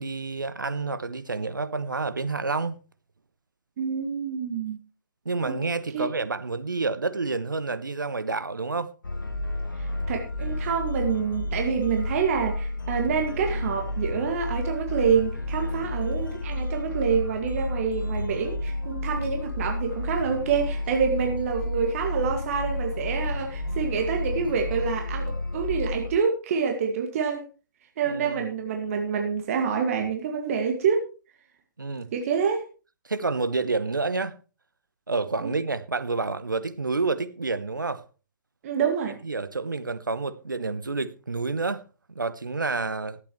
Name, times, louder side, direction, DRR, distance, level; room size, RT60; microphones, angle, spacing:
voice 1, 0.0-2.8 5.2-8.9 28.1-28.5 31.8-32.1 33.1-34.3 35.1-38.0 39.2-41.8 42.1-43.2, right 3 dB, 80° right, 1.0 m, -29 dB
voice 2, 3.8-4.8 5.5-5.6 5.9-6.1 9.8-27.5 28.0-31.0 32.1-32.6 35.4-35.5 38.6-39.2, right 6 dB, 45° right, 2.0 m, -27 dB
sound 1, 9.0-26.1, left 1 dB, 80° left, 1.2 m, -31 dB
21.5 x 8.2 x 3.1 m
figure-of-eight pair, 120°, 11 cm